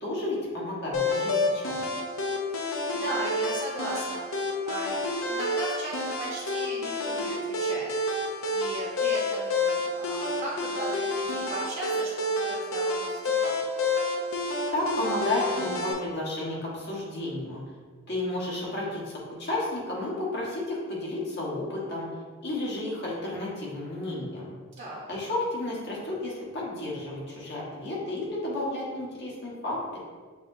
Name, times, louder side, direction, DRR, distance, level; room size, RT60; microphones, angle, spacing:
voice 1, 0.0-1.8 14.7-17.6 18.1-22.1 22.4-24.6 25.1-30.0, left 2 dB, 50° left, -5 dB, 1.2 m, -32 dB
sound 1, 0.9-15.9, left 2 dB, 75° left, 0.6 m, -29 dB
voice 2, 2.6-7.9 8.5-13.6 24.8-25.0, right 1 dB, 35° right, -7 dB, 0.8 m, -37 dB
6.9 x 2.9 x 2.6 m, 1.5 s
head